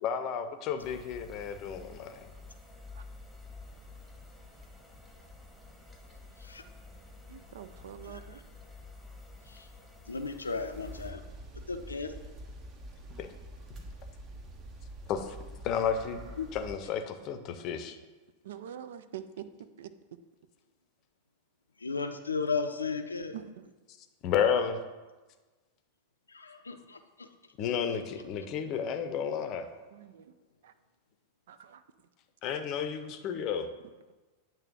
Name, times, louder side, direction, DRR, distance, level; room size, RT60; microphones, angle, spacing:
voice 1, 0.0-2.3 13.2-13.3 15.1-15.4 15.6-16.3 16.5-18.0 24.2-24.8 27.6-29.7 32.4-33.7, left 7 dB, 40° left, 8 dB, 0.6 m, -32 dB
sound 1, 0.8-11.1, left 3 dB, 5° right, 1.2 m, -50 dB
voice 2, 7.3-8.4 18.4-19.5 19.8-19.9 23.3-23.7 29.9-30.3 30.6-30.7 31.5-31.8, right 10 dB, 60° right, 11 dB, 0.4 m, -45 dB
voice 3, 10.1-11.2 11.7-12.1 16.4-16.5 21.8-23.3 26.3-27.3, left 4 dB, 75° left, 7 dB, 0.5 m, -35 dB
sound 2, 10.7-16.8, right 1 dB, 30° right, 0.9 m, -46 dB
8.6 x 3.1 x 6.1 m, 1.3 s
figure-of-eight pair, 90°, 0 cm